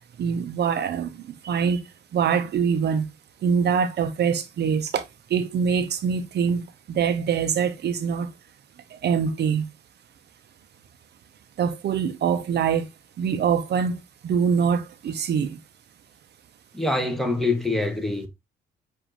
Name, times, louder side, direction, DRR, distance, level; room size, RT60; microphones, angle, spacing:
voice 1, 0.2-1.8 2.1-3.1 3.4-5.0 5.3-6.6 6.9-8.3 9.0-9.7 11.6-12.9 13.2-14.0 14.2-15.6, right 7 dB, 60° right, 0.6 m, -24 dB
voice 2, 16.7-18.3, left 2 dB, ahead, 0.9 m, -25 dB
7.0 x 2.6 x 2.9 m
cardioid pair, 90°, 20 cm